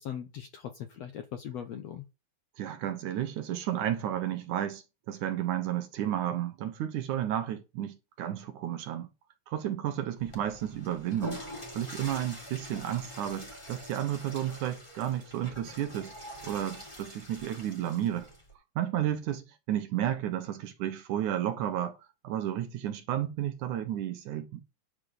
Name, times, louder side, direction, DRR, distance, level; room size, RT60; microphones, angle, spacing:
voice 1, 0.0-2.0, left 9 dB, 65° left, 1.7 m, -40 dB
voice 2, 2.6-9.1 9.5-11.4 11.7-16.1 16.4-18.3 18.8-22.0 22.2-24.6, right 11 dB, 70° right, 2.3 m, -32 dB
Water / Toilet flush, 10.2-18.5, left 1 dB, 10° left, 3.2 m, -45 dB
10.5 x 5.9 x 6.7 m
omnidirectional pair, 4.1 m